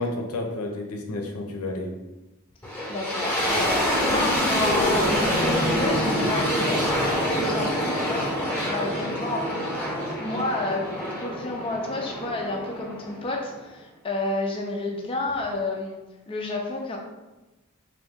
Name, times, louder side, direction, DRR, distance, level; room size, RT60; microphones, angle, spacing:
voice 1, 0.0-1.9 3.6-3.8, left 2 dB, 75° left, 2 dB, 0.6 m, -31 dB
sound 1, 2.6-13.6, equal, 10° left, 0.8 m, -26 dB
voice 2, 2.9-6.9 7.3-9.7 10.2-10.9 11.2-16.0 16.3-17.0, left 2 dB, 25° left, 0 dB, 0.4 m, -30 dB
4.0 x 2.6 x 3.5 m, 1.1 s
head